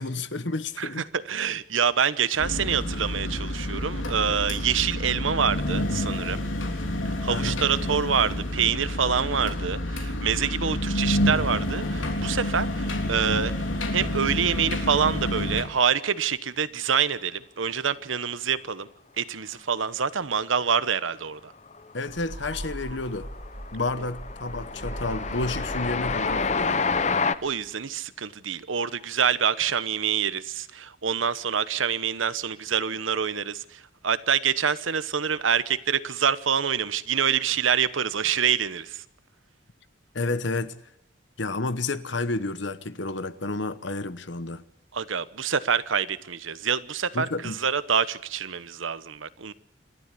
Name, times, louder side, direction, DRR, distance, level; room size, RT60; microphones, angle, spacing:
voice 1, 0.0-1.1 7.3-7.6 21.9-23.3 23.7-26.9 40.1-40.7 41.4-44.6 47.1-47.6, left 2 dB, 70° left, 1.1 m, -30 dB
voice 2, 0.8-6.4 7.2-13.5 13.9-18.9 19.2-21.5 27.4-39.0 44.9-49.5, right 7 dB, 90° right, 1.0 m, -26 dB
sound 1, 2.4-15.6, left 1 dB, 85° left, 3.4 m, -28 dB
Train, 21.7-22.1 22.4-27.4, left 4 dB, 35° left, 0.8 m, -28 dB
sound 2, 22.1-27.4, right 1 dB, 40° right, 2.5 m, -39 dB
28.0 x 12.5 x 8.4 m
head